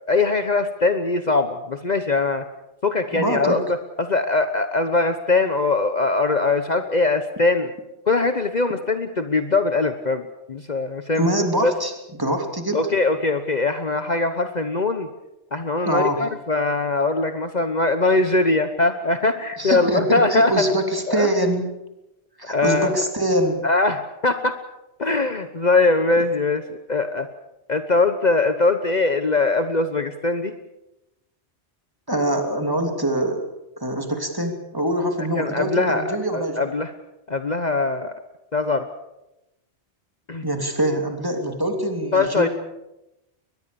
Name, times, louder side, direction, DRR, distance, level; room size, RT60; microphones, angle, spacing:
voice 1, 0.1-2.4 2.8-7.7 8.1-10.2 10.5-11.2 11.6-11.7 12.7-15.1 15.5-20.6 21.1-21.3 22.5-23.0 23.6-24.6 25.0-27.3 27.7-30.5 35.4-36.9 37.3-38.1 38.5-38.9 40.3-40.4 42.1-42.5, left 3 dB, 40° left, 8 dB, 1.2 m, -21 dB
voice 2, 3.1-3.6 11.1-11.9 12.2-12.8 15.8-16.2 19.6-21.7 22.4-23.6 32.1-33.4 33.8-36.6 40.4-42.5, right 1 dB, 20° right, 4 dB, 3.1 m, -24 dB
23.0 x 21.0 x 7.1 m, 0.92 s
omnidirectional pair, 1.1 m